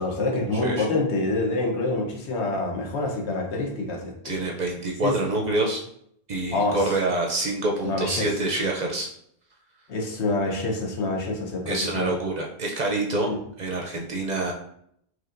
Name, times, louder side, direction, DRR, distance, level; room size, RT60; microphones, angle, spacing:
voice 1, 0.0-4.4 5.0-5.1 6.5-7.0 7.8-8.3 9.9-12.1 13.3-13.4, left 2 dB, 85° left, 0 dB, 1.1 m, -27 dB
voice 2, 0.5-0.9 4.2-5.8 6.3-9.1 11.7-13.3 13.6-14.5, right 2 dB, 50° right, 0 dB, 0.6 m, -26 dB
4.7 x 3.0 x 2.5 m, 0.71 s
omnidirectional pair, 1.1 m